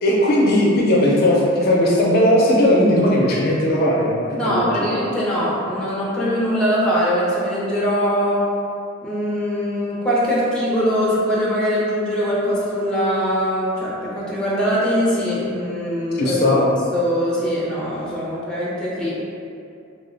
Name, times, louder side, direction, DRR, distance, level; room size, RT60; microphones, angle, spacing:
voice 1, 0.0-4.9 16.1-16.7, left 1 dB, 50° left, -4 dB, 0.5 m, -17 dB
voice 2, 4.4-8.5 9.0-16.4 16.9-19.2, equal, 5° left, -7 dB, 0.6 m, -22 dB
2.9 x 2.1 x 3.9 m, 2.5 s
head